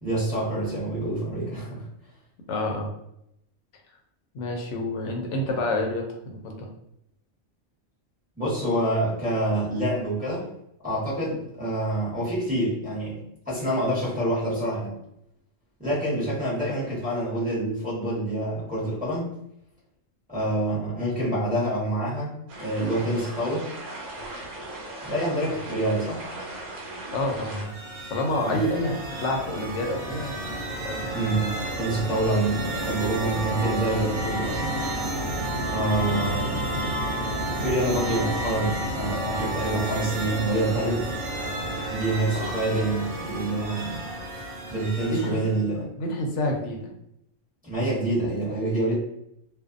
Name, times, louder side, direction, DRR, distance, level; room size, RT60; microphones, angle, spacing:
voice 1, 0.0-1.9 8.4-10.5 10.8-14.9 15.8-19.3 20.3-23.6 25.0-26.2 28.4-28.6 31.0-34.7 35.7-36.6 37.6-41.1 41.9-44.1 44.7-45.9 47.6-48.9, right 1 dB, 5° right, -9 dB, 0.9 m, -27 dB
voice 2, 2.5-2.9 4.3-6.7 27.1-27.7 28.1-30.4 30.7-31.1 35.7-35.9 42.3-42.5 45.1-45.4 46.0-46.8, left 1 dB, 70° left, 2 dB, 0.9 m, -28 dB
sound 1, 22.5-27.6, right 1 dB, 70° right, 1.1 m, -38 dB
sound 2, 27.4-45.6, right 1 dB, 90° right, 1.0 m, -31 dB
2.5 x 2.2 x 2.4 m, 0.77 s
omnidirectional pair, 1.4 m